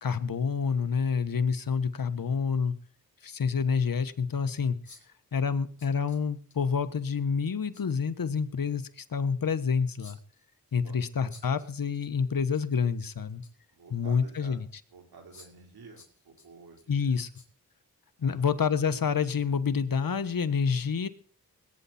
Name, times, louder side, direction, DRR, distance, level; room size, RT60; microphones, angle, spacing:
voice 1, 0.0-2.7 3.2-4.8 5.3-10.2 10.7-13.4 13.9-14.7 16.9-17.3 18.2-21.1, left 6 dB, 65° left, 12 dB, 1.3 m, -28 dB
sound 1, 4.8-5.2 5.8-6.6 7.7-8.0 10.0-10.5 11.3-12.1 12.4-12.6 13.0-13.7 14.3-14.4 15.3-15.7 16.0-16.9 17.3-17.5 17.9-18.0, left 4 dB, 50° left, 4.8 m, -54 dB
voice 2, 13.7-14.6 14.9-17.2 18.2-18.5, right 4 dB, 90° right, 3 dB, 4.0 m, -51 dB
21.0 x 9.7 x 4.3 m, 0.43 s
cardioid pair, 45°, 36 cm